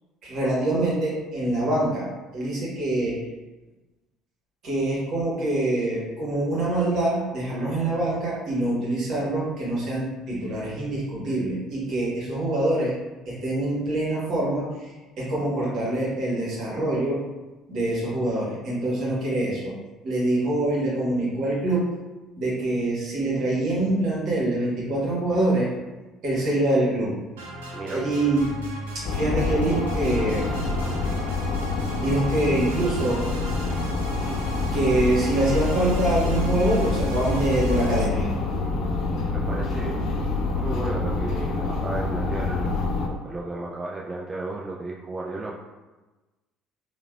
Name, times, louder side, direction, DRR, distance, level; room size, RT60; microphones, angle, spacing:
voice 1, 0.2-2.1 2.3-3.2 4.6-13.0 13.3-14.9 15.2-17.2 17.7-19.7 20.0-21.9 22.4-25.7 26.2-27.2 27.9-28.5 28.9-30.5 32.0-33.2 34.7-38.3, right 1 dB, 55° right, -6 dB, 1.2 m, -25 dB
sound 1, 27.4-38.1, right 1 dB, 85° right, 0.4 m, -36 dB
voice 2, 27.7-28.1 39.3-40.0 40.5-45.5, right 2 dB, 25° right, -4 dB, 0.4 m, -34 dB
sound 2, 29.0-43.1, left 3 dB, 60° left, 0.3 m, -26 dB
3.1 x 2.3 x 2.3 m, 1.2 s
hypercardioid pair, 60°, 0 cm